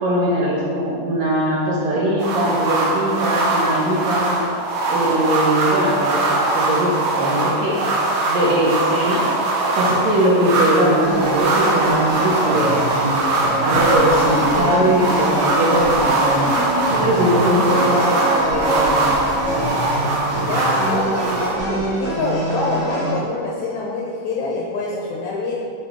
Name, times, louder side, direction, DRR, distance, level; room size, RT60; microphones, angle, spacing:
voice 1, 0.0-4.4 4.9-7.8 8.2-9.2 9.8-13.2 13.6-16.5 17.0-19.1, right 1 dB, 65° right, -5 dB, 1.8 m, -20 dB
sound 1, 2.2-21.5, right 2 dB, 90° right, 1.2 m, -21 dB
sound 2, 11.0-23.1, right 1 dB, 30° right, 0.4 m, -24 dB
voice 2, 20.3-25.5, left 3 dB, 75° left, -2 dB, 1.7 m, -25 dB
8.4 x 6.0 x 3.6 m, 2.4 s
omnidirectional pair, 4.0 m